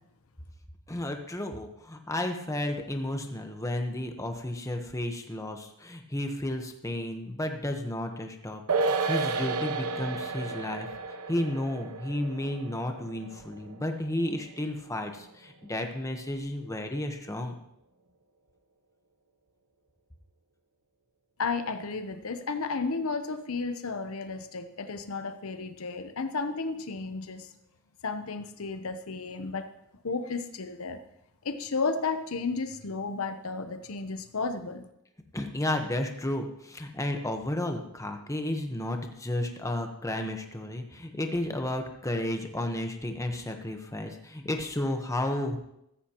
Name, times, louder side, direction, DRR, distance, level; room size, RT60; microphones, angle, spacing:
voice 1, 0.9-10.9 11.3-17.5 35.3-45.6, left 1 dB, 15° left, 4 dB, 1.1 m, -32 dB
sound 1, 8.7-15.4 15.6-15.7, right 4 dB, 90° right, 1.0 m, -33 dB
voice 2, 21.4-27.5 28.0-29.7 30.0-31.0 31.4-34.9, left 4 dB, 70° left, 9 dB, 0.9 m, -33 dB
14.5 x 14.5 x 3.0 m, 0.79 s
head